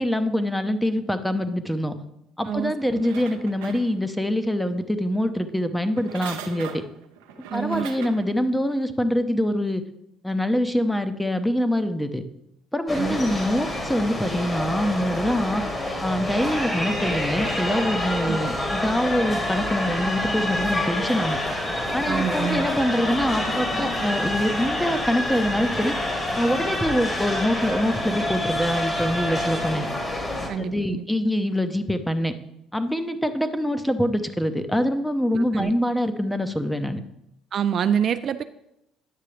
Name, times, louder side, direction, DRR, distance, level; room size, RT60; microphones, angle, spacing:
voice 1, 0.0-2.0 2.4-6.8 7.5-9.8 10.2-12.2 12.7-15.6 16.0-21.4 21.9-25.9 26.4-29.9 30.6-32.3 32.7-37.0, equal, 5° left, 9 dB, 0.8 m, -24 dB
sound 1, 2.8-4.3 5.9-8.3 8.8-8.9, right 8 dB, 90° right, 0.7 m, -40 dB
voice 2, 7.5-7.9 12.9-13.2 18.3-18.4 22.1-22.7 30.5-31.1 35.4-35.7 37.5-38.4, right 8 dB, 55° right, 11 dB, 0.3 m, -26 dB
sound 2, 12.9-30.5, left 1 dB, 25° left, 1.7 m, -27 dB
10.0 x 6.6 x 3.3 m, 0.83 s
supercardioid pair, 70°, 0 cm